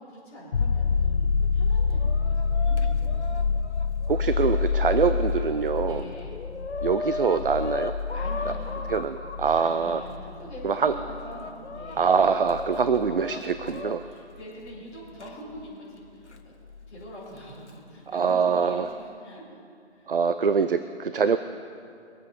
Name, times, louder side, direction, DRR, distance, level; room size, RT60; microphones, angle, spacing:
voice 1, 0.0-3.6 5.8-6.4 8.1-8.9 9.6-12.1 14.0-16.5 16.9-19.6 19.9-20.1, equal, 15° left, -10 dB, 3.9 m, -44 dB
sound 1, 0.5-14.0 16.8-16.9, left 5 dB, 50° left, 0.7 m, -27 dB
Chicken rooster, 1.6-5.1 5.7-5.8 6.0-10.1 10.7-13.9 15.2-15.3 16.3-16.4 17.4-17.7, left 3 dB, 75° left, 1.2 m, -38 dB
voice 2, 4.1-6.0 6.8-8.0 8.9-10.0 10.6-10.9 12.0-14.1 18.1-18.9 20.1-21.4, right 6 dB, 50° right, 11 dB, 0.5 m, -24 dB
22.5 x 8.7 x 5.2 m, 2.4 s
figure-of-eight pair, 160°, 34 cm